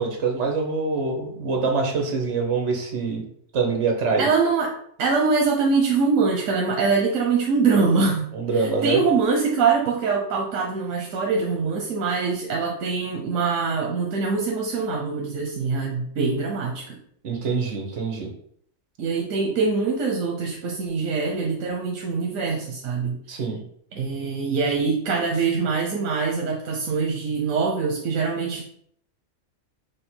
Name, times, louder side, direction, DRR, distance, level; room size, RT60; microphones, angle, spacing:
voice 1, 0.0-3.2 3.5-4.3 8.3-9.0 17.2-18.3 23.3-23.6, right 4 dB, 65° right, 2 dB, 1.2 m, -24 dB
voice 2, 4.2-4.7 5.0-8.2 8.5-17.0 19.0-23.2 23.9-28.6, right 4 dB, 90° right, 1 dB, 1.1 m, -23 dB
4.9 x 2.2 x 4.4 m, 0.65 s
omnidirectional pair, 1.3 m